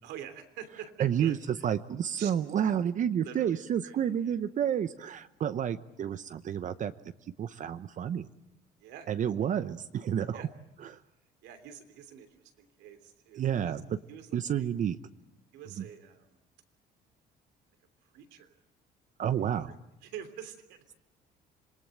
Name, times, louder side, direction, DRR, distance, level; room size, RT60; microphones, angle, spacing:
voice 1, 0.0-1.7 2.2-2.3 3.2-4.4 8.8-9.1 10.3-10.5 11.4-13.8 14.1-14.3 14.6-14.7 15.5-16.4 18.1-18.6 20.0-20.9, right 9 dB, 90° right, 8 dB, 3.1 m, -46 dB
voice 2, 1.0-1.4 1.6-6.9 7.4-8.3 9.1-10.5 10.9-11.0 13.4-14.0 14.3-15.0 15.8-15.9 19.2-19.7, right 9 dB, 50° right, 12 dB, 0.9 m, -30 dB
27.0 x 21.0 x 9.1 m, 0.90 s
cardioid pair, 110°, 17 cm